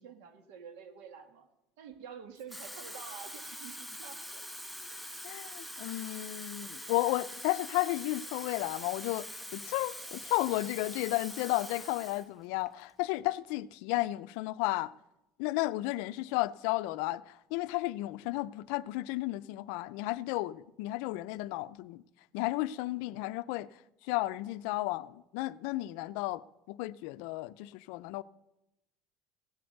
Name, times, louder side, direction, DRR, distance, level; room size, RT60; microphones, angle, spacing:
voice 1, 0.0-1.5 1.8-4.5 4.9-5.0 16.1-16.3, right 7 dB, 85° right, 1.9 m, -49 dB
Water tap faucet / Fill (with liquid), 2.4-12.3 12.7-12.9, equal, ahead, 0.8 m, -44 dB
voice 2, 5.2-14.9 15.4-22.0 22.3-23.7 24.1-26.4 26.7-28.2, left 18 dB, 75° left, 0.4 m, -33 dB
16.0 x 7.9 x 6.6 m
cardioid pair, 160°, 0 cm